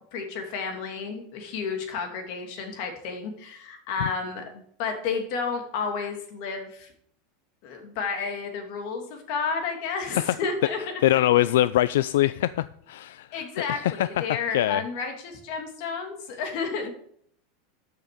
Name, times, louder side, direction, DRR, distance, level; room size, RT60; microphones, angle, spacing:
voice 1, 0.1-6.9 7.6-10.8 11.1-11.5 13.3-16.9, left 5 dB, 50° left, 2.6 m, -31 dB
voice 2, 11.0-14.8, left 14 dB, 85° left, 0.3 m, -23 dB
13.0 x 6.7 x 5.0 m
supercardioid pair, 165°, 0 cm